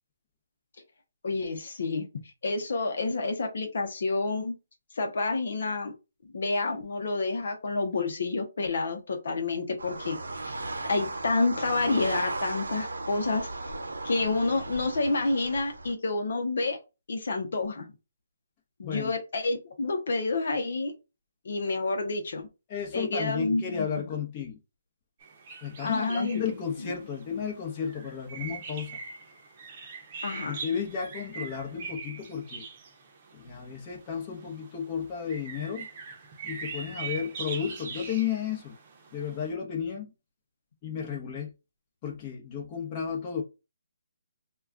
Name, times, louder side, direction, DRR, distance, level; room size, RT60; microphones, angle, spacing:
voice 1, 1.2-2.1 2.4-4.5 4.9-5.9 6.3-10.5 10.9-13.5 14.0-16.8 17.1-17.9 18.8-20.9 21.4-22.5 22.9-24.1 25.8-26.4 26.8-26.9 30.2-30.6, left 3 dB, 65° left, 0.7 m, -29 dB
sound 1, 9.8-15.9, right 2 dB, 90° right, 0.7 m, -36 dB
voice 2, 22.7-24.6 25.6-29.0 30.5-32.6 33.3-35.9 36.4-38.7 39.1-40.1 40.8-41.5 42.0-43.4, left 7 dB, 30° left, 0.8 m, -33 dB
sound 2, 25.2-39.5, right 5 dB, 35° right, 0.7 m, -42 dB
2.3 x 2.3 x 3.5 m
hypercardioid pair, 155°, 0 cm